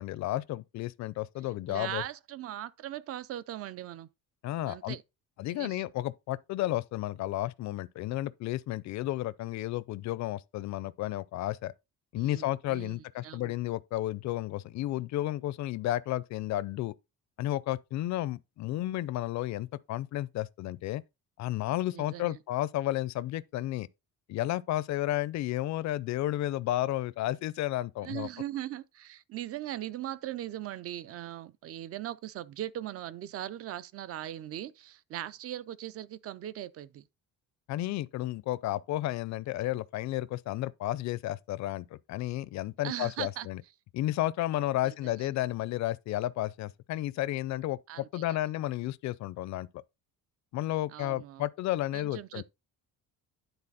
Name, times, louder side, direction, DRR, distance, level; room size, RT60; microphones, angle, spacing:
voice 1, 0.0-2.0 4.4-5.0 5.4-11.7 12.1-16.9 17.4-21.0 21.4-23.9 24.3-28.3 37.7-43.6 43.9-49.7 50.5-52.4, left 15 dB, 55° left, 0.5 m, -32 dB
voice 2, 1.7-4.1 4.7-5.0 5.5-5.8 12.2-13.5 21.9-22.3 28.0-37.0 42.8-43.5 44.8-45.3 47.9-48.2 50.9-51.4 51.9-52.4, right 12 dB, 45° right, 0.5 m, -39 dB
9.9 x 4.0 x 4.0 m
cardioid pair, 165°, 34 cm